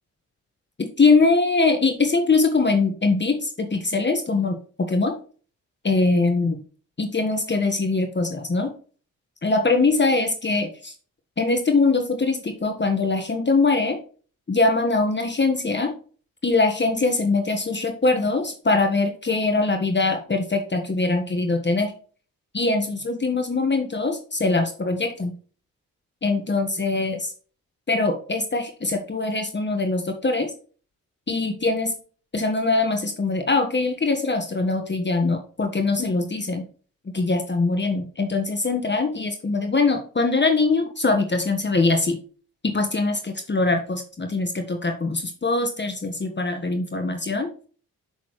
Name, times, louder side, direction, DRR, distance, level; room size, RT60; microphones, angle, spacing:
voice 1, 0.8-5.1 5.8-6.6 7.0-8.7 9.4-10.9 11.4-14.0 14.5-15.9 16.4-21.9 22.5-25.3 26.2-27.3 27.9-30.5 31.3-31.9 32.3-36.6 37.1-42.2 42.6-47.5, left 3 dB, 30° left, 5 dB, 1.4 m, -22 dB
6.9 x 6.2 x 3.1 m, 0.40 s
supercardioid pair, 50°, 35 cm